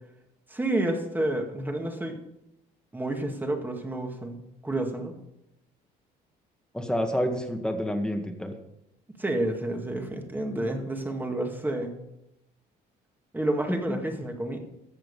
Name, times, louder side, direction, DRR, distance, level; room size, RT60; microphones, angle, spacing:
voice 1, 0.5-2.2 2.9-5.1 9.2-11.9 13.3-14.6, right 1 dB, 10° right, 3 dB, 2.1 m, -30 dB
voice 2, 6.7-8.5 13.7-14.1, equal, 5° left, 4 dB, 1.9 m, -29 dB
14.0 x 7.6 x 5.6 m, 0.83 s
cardioid pair, 110°, 17 cm